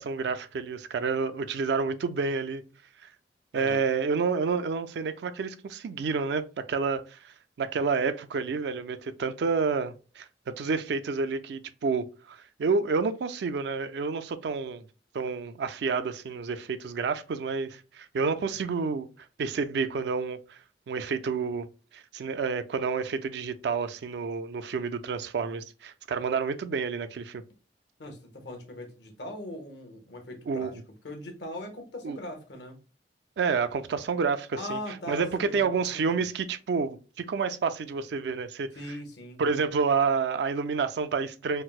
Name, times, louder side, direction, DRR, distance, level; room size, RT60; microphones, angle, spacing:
voice 1, 0.0-2.6 3.0-3.1 3.5-10.3 10.6-14.9 15.1-19.1 19.4-20.6 20.9-21.7 21.9-27.4 30.5-30.8 32.0-32.2 33.4-39.0 39.4-41.6, right 5 dB, 65° right, 0.3 m, -29 dB
voice 2, 28.0-30.8 31.0-32.8 34.6-35.2 35.6-36.2 38.7-39.4, left 1 dB, 70° left, 0.9 m, -40 dB
4.2 x 2.0 x 2.3 m
head